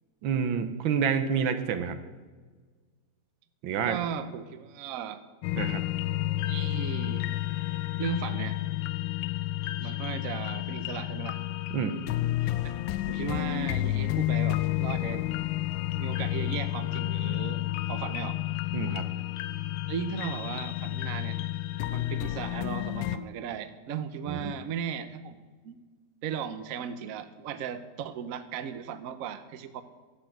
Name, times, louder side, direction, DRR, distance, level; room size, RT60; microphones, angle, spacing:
voice 1, 0.2-2.0 3.6-4.0 5.5-5.8 11.7-12.0 18.7-19.1 24.3-24.6, right 7 dB, 85° right, 9 dB, 1.7 m, -28 dB
voice 2, 3.8-5.2 6.5-7.3 8.0-8.6 9.8-11.4 12.4-15.3 16.0-17.6 17.9-18.4 19.9-21.4 21.9-25.8 26.2-29.8, right 8 dB, 60° right, 11 dB, 1.0 m, -36 dB
sound 1, 5.4-23.2, left 15 dB, 85° left, 1.3 m, -31 dB
12.0 x 8.2 x 7.8 m, 1.4 s
omnidirectional pair, 2.1 m